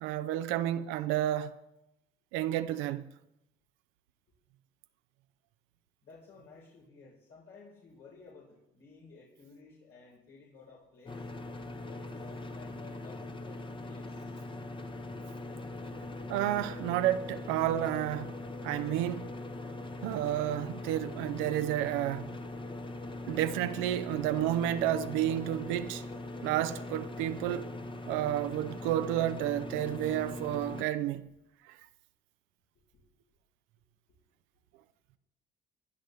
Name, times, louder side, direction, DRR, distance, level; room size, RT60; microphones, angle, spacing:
voice 1, 0.0-1.5 2.3-3.0 16.3-18.3 18.6-19.3 20.0-22.3 23.3-26.0 26.4-27.7 28.1-31.2, right 12 dB, 90° right, 0.7 m, -31 dB
voice 2, 6.0-11.2 11.8-14.3 32.9-33.0, left 4 dB, 70° left, 4.5 m, -55 dB
sound 1, 11.1-30.8, left 2 dB, 25° left, 1.1 m, -41 dB
19.0 x 11.0 x 3.3 m
supercardioid pair, 80°, 20 cm